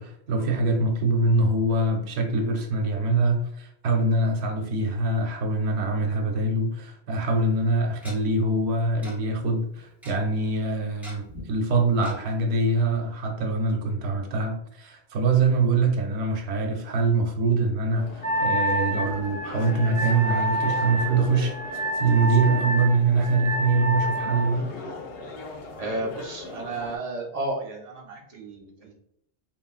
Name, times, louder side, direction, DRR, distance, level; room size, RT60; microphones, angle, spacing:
voice 1, 0.0-21.5 22.0-24.7, right 3 dB, 90° right, 3 dB, 0.9 m, -24 dB
Tick-tock, 7.1-7.2 8.0-8.1 9.0-9.1 9.4-9.5 9.7-10.1 11.0-11.4 12.0-12.1 12.6-12.7 13.0-13.1, left 1 dB, ahead, 0.4 m, -42 dB
sound 1, 17.9-27.0, left 3 dB, 70° left, 0.8 m, -40 dB
Wind instrument woodwind instrument, 18.2-24.5, right 1 dB, 30° left, 1.3 m, -28 dB
voice 2, 25.8-28.9, right 2 dB, 45° right, -1 dB, 0.6 m, -32 dB
3.2 x 2.1 x 2.3 m, 0.71 s
omnidirectional pair, 1.1 m